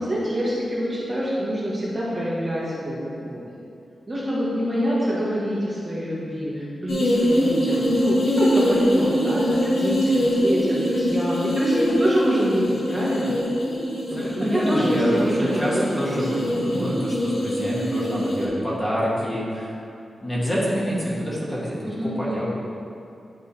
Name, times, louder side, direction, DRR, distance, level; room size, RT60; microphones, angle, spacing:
voice 1, 0.0-3.4 4.1-13.3 14.1-17.0 21.9-22.5, equal, 25° right, -7 dB, 1.6 m, -26 dB
sound 1, 6.9-18.5, equal, 70° left, 1.5 m, -23 dB
voice 2, 14.1-19.8 20.2-22.5, equal, 15° left, -7 dB, 1.6 m, -27 dB
10.5 x 3.8 x 4.2 m, 2.6 s
wide cardioid pair, 135°, 0 cm